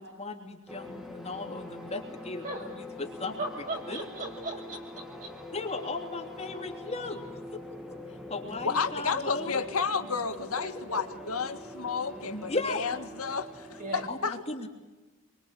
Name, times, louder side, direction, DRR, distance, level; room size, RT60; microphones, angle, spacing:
voice 1, 0.0-3.4 3.9-4.0 5.5-7.4 8.1-9.6 12.3-12.8 14.1-14.7, left 3 dB, 30° left, 3 dB, 3.1 m, -36 dB
sound 1, 0.7-14.1, left 1 dB, ahead, 2.6 m, -44 dB
voice 2, 3.4-5.3 13.8-14.0, right 2 dB, 35° right, 1 dB, 7.5 m, -37 dB
voice 3, 8.6-14.3, left 5 dB, 75° left, 7 dB, 1.9 m, -31 dB
27.0 x 24.5 x 8.4 m, 1.2 s
head